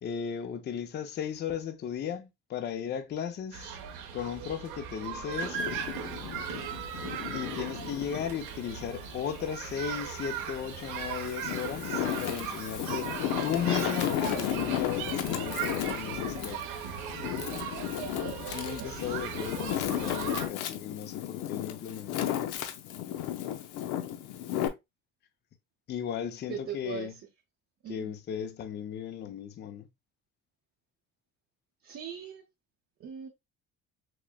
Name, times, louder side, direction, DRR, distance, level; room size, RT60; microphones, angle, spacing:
voice 1, 0.0-3.8 4.1-5.8 7.3-13.1 13.4-16.7 18.5-22.5 25.9-27.1 27.9-29.9, left 8 dB, 35° left, 0.5 m, -36 dB
sound 1, 3.5-20.5, right 8 dB, 85° right, 0.8 m, -38 dB
Wind, 5.5-8.3 8.8-10.1 10.7-24.7, left 11 dB, 85° left, 0.6 m, -34 dB
voice 2, 18.8-19.2 23.6-23.7 26.5-27.1 27.8-28.1 31.8-32.4 33.0-33.3, right 8 dB, 45° right, 0.7 m, -40 dB
6.0 x 2.1 x 2.2 m
cardioid pair, 120°, 30 cm